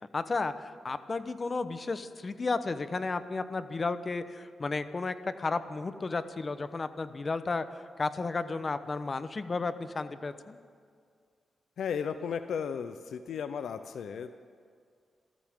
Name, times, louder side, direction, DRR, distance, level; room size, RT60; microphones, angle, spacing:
voice 1, 0.1-10.6, left 3 dB, 40° left, 11 dB, 0.9 m, -33 dB
voice 2, 11.8-14.3, left 7 dB, 80° left, 10 dB, 0.6 m, -35 dB
27.0 x 14.0 x 3.7 m, 2.1 s
cardioid pair, 70°, 0 cm